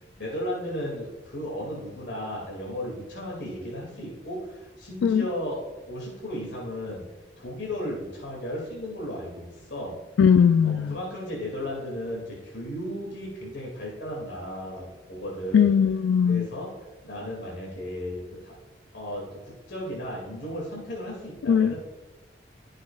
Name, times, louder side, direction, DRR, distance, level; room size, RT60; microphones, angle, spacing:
voice 1, 0.2-5.6 5.9-7.0 7.4-10.0 10.6-15.7 16.2-16.7 17.0-18.5 18.9-21.8, equal, 70° left, 2.4 m, -35 dB
voice 2, 10.2-10.9 15.5-16.5 21.5-21.8, left 7 dB, 90° left, 0.3 m, -19 dB
15.5 x 6.5 x 2.4 m
head